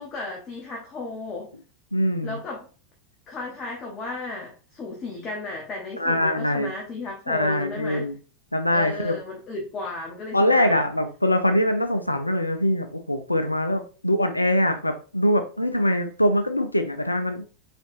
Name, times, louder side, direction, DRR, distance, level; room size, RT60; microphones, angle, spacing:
voice 1, 0.0-1.5 2.2-2.7 3.3-8.1 8.7-10.8, left 3 dB, 25° left, -1 dB, 0.9 m, -34 dB
voice 2, 1.9-2.4 6.0-6.7 7.3-8.1 8.5-9.2 10.3-17.4, left 1 dB, 85° left, 8 dB, 0.4 m, -23 dB
3.8 x 3.4 x 2.6 m, 0.36 s
figure-of-eight pair, 90°, 0 cm